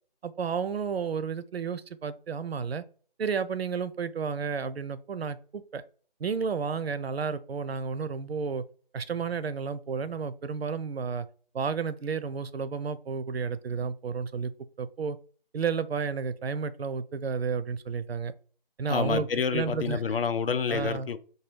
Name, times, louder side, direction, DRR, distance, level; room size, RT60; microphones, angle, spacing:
voice 1, 0.2-2.8 3.2-5.8 6.2-8.6 8.9-11.3 11.5-14.5 14.8-15.2 15.5-18.3 18.8-20.0 20.7-21.1, right 5 dB, 85° right, 0.5 m, -31 dB
voice 2, 18.9-21.2, left 6 dB, 70° left, 0.5 m, -28 dB
4.6 x 2.3 x 3.2 m
figure-of-eight pair, 160°, 30 cm